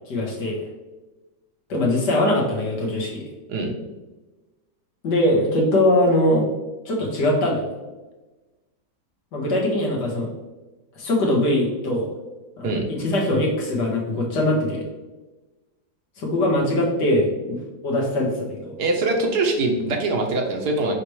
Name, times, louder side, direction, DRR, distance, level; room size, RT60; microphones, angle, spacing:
voice 1, 0.1-0.6 1.7-3.2 5.0-6.5 6.9-7.7 9.3-10.3 11.0-12.1 12.6-14.9 16.2-17.6 17.8-18.8, left 1 dB, 85° left, -2 dB, 2.3 m, -22 dB
voice 2, 18.8-21.0, right 2 dB, 70° right, 2 dB, 1.6 m, -23 dB
7.2 x 5.0 x 3.2 m, 1.1 s
omnidirectional pair, 1.8 m